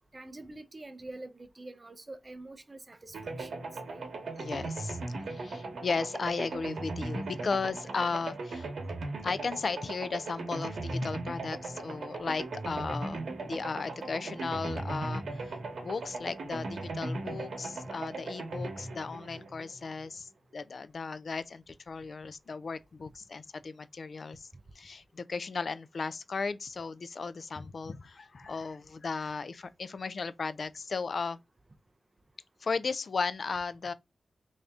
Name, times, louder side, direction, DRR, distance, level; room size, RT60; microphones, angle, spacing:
voice 1, 0.1-4.0, right 2 dB, 25° right, 0.4 m, -46 dB
sound 1, 3.1-20.1, right 2 dB, 85° right, 1.0 m, -38 dB
voice 2, 4.4-5.0 5.3-8.7 9.2-15.6 15.8-24.5 24.8-31.4 32.6-33.9, left 4 dB, 55° left, 0.3 m, -35 dB
3.4 x 2.6 x 3.5 m
wide cardioid pair, 135°, 0 cm